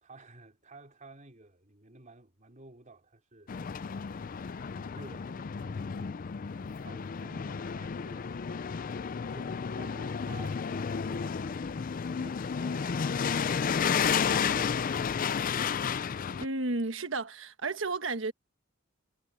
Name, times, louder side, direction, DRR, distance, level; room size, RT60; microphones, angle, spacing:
voice 1, 0.0-3.5 3.8-4.4 4.7-6.2 6.5-8.6 9.2-11.8 12.0-15.5, right 2 dB, 40° right, 4.4 m, -53 dB
sound 1, 3.5-16.5, left 6 dB, 45° left, 0.4 m, -32 dB
voice 2, 16.4-18.3, right 3 dB, 70° right, 1.4 m, -32 dB
head